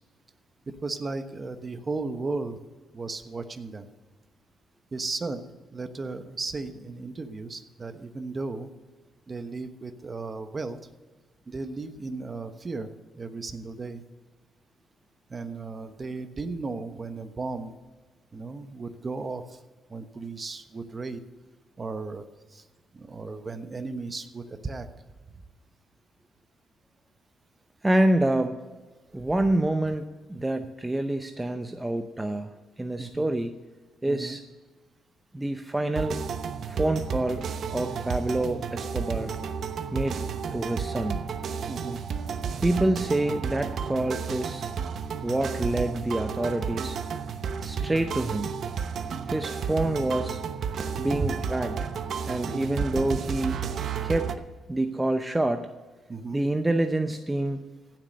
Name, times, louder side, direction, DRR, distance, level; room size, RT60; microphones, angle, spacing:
voice 1, 0.7-2.6 2.9-3.9 4.9-5.4 5.7-8.7 9.3-10.8 11.5-14.0 15.3-17.8 18.3-19.6 19.9-21.2 21.8-22.6 22.9-24.9 33.0-33.3 34.1-34.4 41.7-42.0 51.1-51.4 52.4-53.2 56.1-56.4, right 3 dB, 30° right, 9 dB, 1.1 m, -35 dB
voice 2, 27.8-28.6 29.1-33.6 34.0-34.4 35.3-36.2 36.7-39.3 39.9-40.2 40.5-41.3 42.6-44.7 45.2-47.0 47.6-48.5 49.3-50.4 51.0-51.9 52.3-53.6 54.0-54.3 54.7-55.7 56.3-57.6, right 1 dB, 15° right, 7 dB, 0.7 m, -27 dB
sound 1, 35.9-54.4, right 6 dB, 60° right, 0.9 m, -32 dB
16.0 x 7.6 x 5.3 m, 1.3 s
cardioid pair, 90°, 0 cm